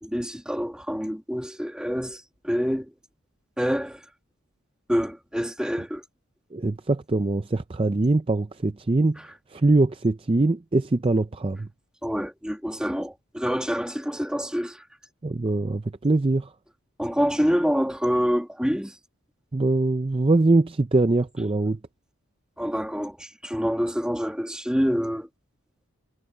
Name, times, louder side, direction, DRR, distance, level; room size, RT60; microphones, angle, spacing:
voice 1, 0.0-2.8 3.6-4.0 4.9-6.0 12.0-14.8 17.0-18.9 22.6-25.3, equal, 5° right, 1.8 m, -26 dB
voice 2, 6.5-9.2 9.5-11.7 15.2-16.5 19.5-21.8, right 2 dB, 25° right, 0.5 m, -22 dB
head